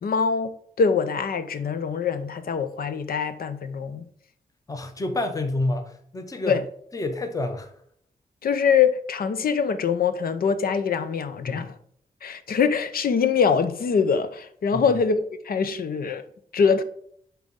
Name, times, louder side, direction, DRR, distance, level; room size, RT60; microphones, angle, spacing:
voice 1, 0.0-4.1 6.5-6.6 8.4-11.7 12.2-16.2 16.5-16.8, left 6 dB, 75° left, 0.7 m, -23 dB
voice 2, 4.7-6.6 6.9-7.7 11.4-11.7 14.7-14.9, left 2 dB, 20° left, 0.8 m, -28 dB
10.5 x 4.1 x 3.7 m
wide cardioid pair, 110°, 15 cm